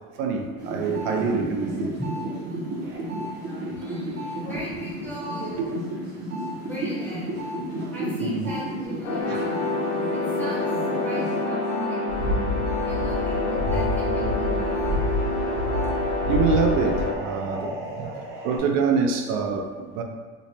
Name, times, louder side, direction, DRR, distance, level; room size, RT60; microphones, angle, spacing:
voice 1, 0.2-1.9 3.8-3.9 4.5-4.6 5.6-5.7 8.2-8.5 9.2-9.5 16.3-20.0, right 5 dB, 80° right, 3 dB, 0.6 m, -26 dB
sound 1, 0.6-11.9 12.2-18.6, right 1 dB, 30° right, 0.6 m, -34 dB
voice 2, 3.7-5.6 6.6-7.3 7.9-9.6 10.1-15.3, equal, 5° left, -8 dB, 0.7 m, -37 dB
sound 2, 9.0-17.1, left 2 dB, 70° left, 0.7 m, -27 dB
sound 3, 12.1-17.1, left 1 dB, 55° right, 0.9 m, -28 dB
3.1 x 2.1 x 4.1 m, 1.4 s
cardioid pair, 170°, 34 cm